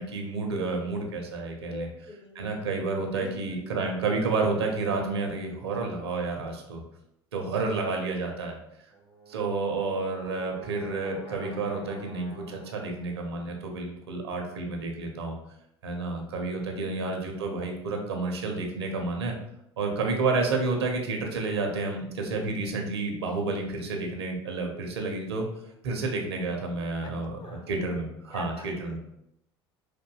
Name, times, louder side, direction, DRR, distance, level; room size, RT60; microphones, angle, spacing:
voice 1, 0.0-1.9 2.3-6.8 7.3-8.6 9.3-15.3 15.8-19.3 19.8-25.5 25.8-27.3 27.7-29.0, right 3 dB, 75° right, 2 dB, 0.6 m, -30 dB
voice 2, 1.7-2.5 3.1-3.7 16.5-17.0 27.0-27.7 28.3-29.0, left 2 dB, 35° left, 4 dB, 0.6 m, -43 dB
Brass instrument, 8.9-13.2, right 3 dB, 90° left, 1.2 m, -47 dB
4.3 x 2.6 x 2.2 m, 0.80 s
figure-of-eight pair, 65°, 14 cm